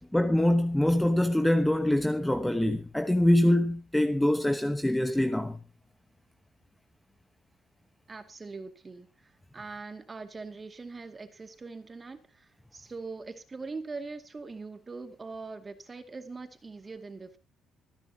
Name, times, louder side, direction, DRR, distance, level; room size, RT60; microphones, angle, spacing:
voice 1, 0.1-5.6, left 1 dB, 5° left, 1.1 m, -24 dB
voice 2, 8.1-9.1 9.5-17.4, right 4 dB, 20° right, 2.2 m, -42 dB
25.5 x 10.0 x 2.9 m
cardioid pair, 135°, 0 cm